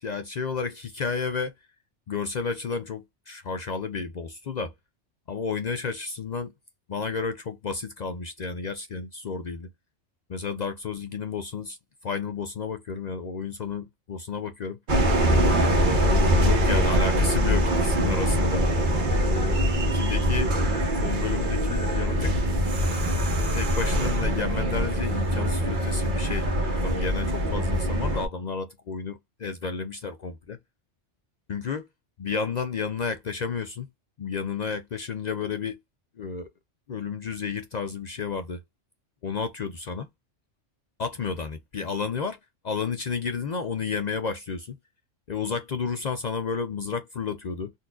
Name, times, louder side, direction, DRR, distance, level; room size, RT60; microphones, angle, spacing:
voice 1, 0.0-1.5 2.1-4.7 5.3-6.5 6.9-9.7 10.3-11.8 12.0-14.8 16.1-18.6 19.2-22.3 23.0-23.2 23.5-26.5 26.8-30.6 31.5-31.9 32.2-33.9 34.2-35.8 36.2-36.5 36.9-38.6 39.2-40.1 41.0-42.4 42.6-44.8 45.3-47.7, left 5 dB, 60° left, 0.4 m, -31 dB
sound 1, 14.9-28.3, equal, 45° right, 1.0 m, -23 dB
4.0 x 2.5 x 2.3 m
omnidirectional pair, 1.2 m